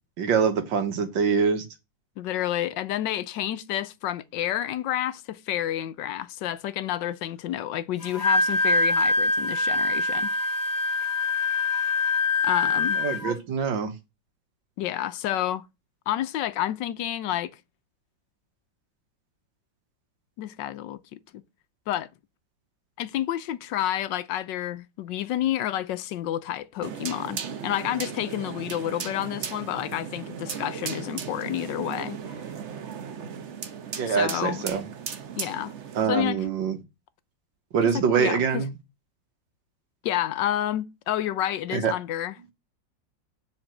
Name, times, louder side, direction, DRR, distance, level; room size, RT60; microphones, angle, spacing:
voice 1, 0.2-1.7 13.0-13.9 34.0-34.8 36.0-36.8 37.7-38.7 41.7-41.9, right 6 dB, 80° right, 1.9 m, -24 dB
voice 2, 2.2-10.3 12.4-13.0 14.8-15.7 16.1-17.5 20.4-21.4 21.9-22.1 23.0-32.2 34.1-34.6 35.4-35.7 36.1-36.4 37.9-38.6 40.0-42.3, left 12 dB, 75° left, 1.3 m, -29 dB
Wind instrument woodwind instrument, 8.0-13.3, left 2 dB, 35° left, 0.9 m, -24 dB
sound 1, 26.8-36.0, right 7 dB, 50° right, 0.9 m, -36 dB
7.5 x 4.3 x 6.4 m
omnidirectional pair, 2.0 m